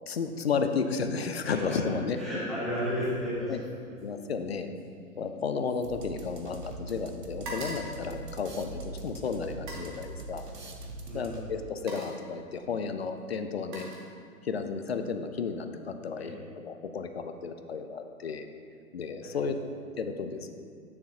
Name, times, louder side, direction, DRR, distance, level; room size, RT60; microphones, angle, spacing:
voice 1, 0.1-2.2 3.5-3.6 4.0-4.7 5.2-10.5 11.1-13.9 14.4-18.5 18.9-19.5 20.0-20.5, left 5 dB, 45° left, 8 dB, 0.5 m, -33 dB
voice 2, 1.5-1.8 2.2-3.9 11.1-11.5 16.2-16.4 19.2-19.4, equal, ahead, -10 dB, 0.8 m, -34 dB
sound 1, 2.9-3.3 3.6-6.7 7.0-8.9 9.5-10.0 11.0-11.2 11.6-12.3 13.2-14.6 14.9-15.3, right 1 dB, 30° right, 1.5 m, -45 dB
sound 2, 5.8-11.7, right 2 dB, 85° right, 1.1 m, -42 dB
9.5 x 6.7 x 2.8 m, 2.4 s
figure-of-eight pair, 130°, 46 cm